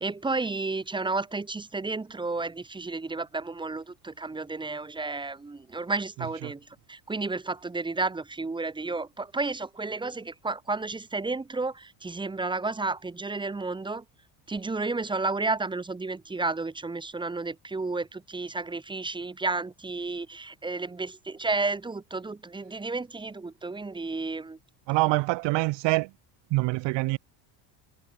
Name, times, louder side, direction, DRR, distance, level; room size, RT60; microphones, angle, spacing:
voice 1, 0.0-14.0 14.5-24.6, right 3 dB, 10° right, 1.6 m, -32 dB
voice 2, 24.9-26.1 26.5-27.2, right 22 dB, 65° right, 4.1 m, -25 dB
cardioid pair, 170°, 46 cm